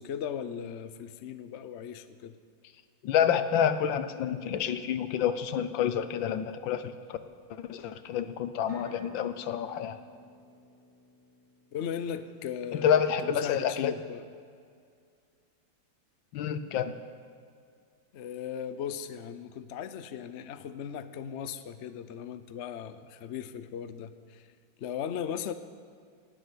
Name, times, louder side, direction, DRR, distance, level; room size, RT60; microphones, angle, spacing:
voice 1, 0.0-2.4 11.7-14.3 18.1-24.5 24.8-25.5, left 8 dB, 65° left, 11 dB, 0.7 m, -37 dB
voice 2, 3.0-7.2 7.5-10.0 12.7-13.9 16.3-16.9, left 8 dB, 80° left, 11 dB, 1.5 m, -28 dB
sound 1, 8.7-12.4, left 2 dB, 35° right, 4.5 m, -52 dB
18.0 x 7.7 x 9.4 m, 2.2 s
omnidirectional pair, 2.1 m